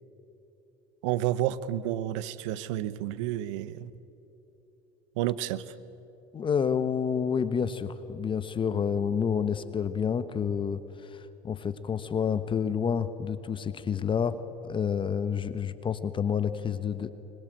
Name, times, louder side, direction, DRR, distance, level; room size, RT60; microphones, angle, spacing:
voice 1, 1.0-3.9 5.2-5.7, right 13 dB, 80° right, 17 dB, 0.9 m, -30 dB
voice 2, 6.3-17.1, left 7 dB, 35° left, 12 dB, 1.2 m, -29 dB
25.0 x 21.5 x 9.1 m, 3.0 s
hypercardioid pair, 80°, 16 cm